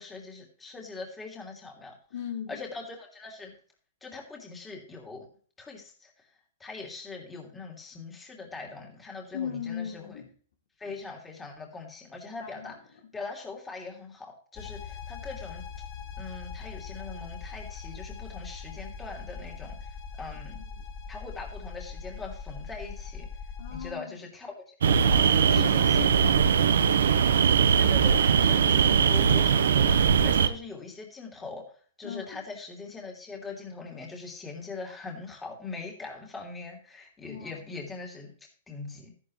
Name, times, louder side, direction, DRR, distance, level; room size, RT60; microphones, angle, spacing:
voice 1, 0.0-1.9 2.5-3.5 4.0-5.3 5.6-6.1 6.6-10.2 10.8-12.8 13.1-15.6 16.2-20.6 21.1-23.3 23.7-25.9 27.8-31.6 32.0-38.3 38.7-39.1, left 4 dB, 10° left, 0 dB, 3.0 m, -41 dB
voice 2, 2.1-2.6 9.3-10.3 12.4-12.7 20.5-20.6 23.6-24.2 25.3-27.1 32.0-32.4 37.3-37.6, left 7 dB, 70° left, 4 dB, 2.4 m, -37 dB
sound 1, 14.5-23.9, left 6 dB, 40° left, 6.6 m, -41 dB
sound 2, 24.8-30.5, right 7 dB, 75° right, 1.1 m, -21 dB
13.5 x 11.0 x 3.3 m, 0.44 s
hypercardioid pair, 135°, 0 cm